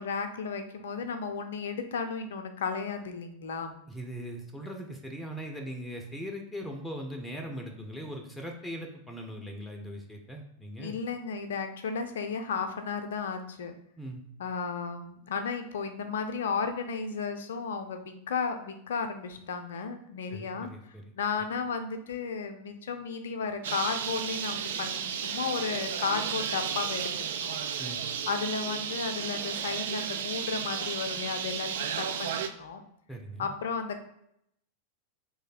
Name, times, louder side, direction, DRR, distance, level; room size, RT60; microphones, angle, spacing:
voice 1, 0.0-3.8 10.8-13.8 14.4-27.6 28.3-32.8 33.4-34.0, left 5 dB, 60° left, 7 dB, 0.4 m, -34 dB
voice 2, 3.9-10.9 14.0-14.2 20.3-21.0 27.8-28.0 33.1-33.5, equal, 5° left, 2 dB, 0.6 m, -40 dB
Bird, 23.6-32.5, right 8 dB, 60° right, 0.3 m, -33 dB
3.2 x 2.6 x 4.0 m, 0.76 s
figure-of-eight pair, 90°, 0 cm